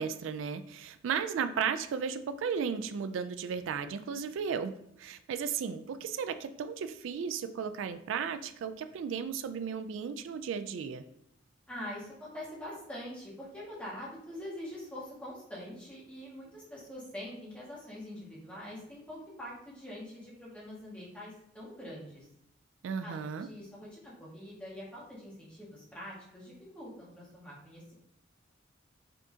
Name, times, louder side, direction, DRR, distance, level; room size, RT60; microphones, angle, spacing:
voice 1, 0.0-4.7 5.0-11.0 22.8-23.5, right 6 dB, 85° right, 11 dB, 0.3 m, -35 dB
voice 2, 11.7-22.3 23.0-27.9, left 1 dB, 5° left, -7 dB, 1.6 m, -44 dB
5.1 x 3.6 x 2.7 m, 0.76 s
head